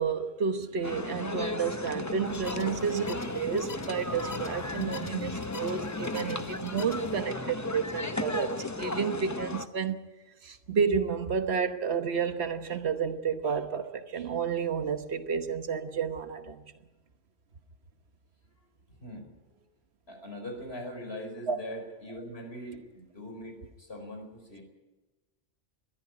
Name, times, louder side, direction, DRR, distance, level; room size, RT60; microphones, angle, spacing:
voice 1, 0.0-10.0 10.4-16.6 21.5-21.6, right 6 dB, 85° right, 1.4 m, -31 dB
sound 1, 0.8-9.7, left 2 dB, 20° left, 0.8 m, -35 dB
sound 2, 2.2-7.2, left 4 dB, 40° left, 1.3 m, -45 dB
voice 2, 19.0-19.6 20.1-24.6, equal, 75° left, 5.1 m, -41 dB
21.5 x 14.0 x 9.8 m
omnidirectional pair, 1.1 m